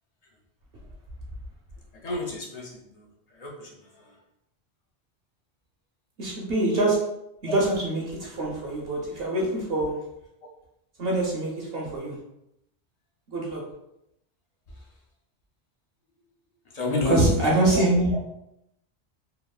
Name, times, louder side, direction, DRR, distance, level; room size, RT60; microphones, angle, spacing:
voice 1, 2.0-3.0 3.4-3.7 16.7-17.3 17.8-17.9, left 3 dB, 55° left, -1 dB, 0.4 m, -29 dB
voice 2, 6.2-7.0 7.4-10.0 11.0-12.1 13.3-13.6 17.1-18.1, right 1 dB, 65° right, -3 dB, 0.9 m, -24 dB
2.9 x 2.3 x 2.2 m, 0.82 s
omnidirectional pair, 1.1 m